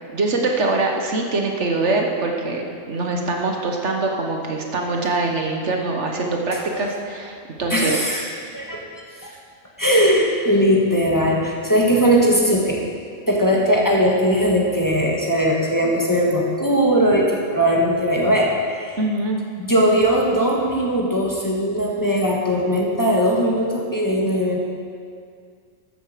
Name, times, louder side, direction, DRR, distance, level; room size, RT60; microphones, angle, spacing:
voice 1, 0.1-8.0 19.0-19.4, right 3 dB, 65° right, 2 dB, 1.5 m, -23 dB
voice 2, 6.5-6.8 7.7-8.3 8.5-8.8 9.2-9.3 9.8-12.8 13.3-19.0 19.6-24.6, equal, 15° left, -3 dB, 1.6 m, -19 dB
13.5 x 8.0 x 6.6 m, 2.2 s
omnidirectional pair, 1.3 m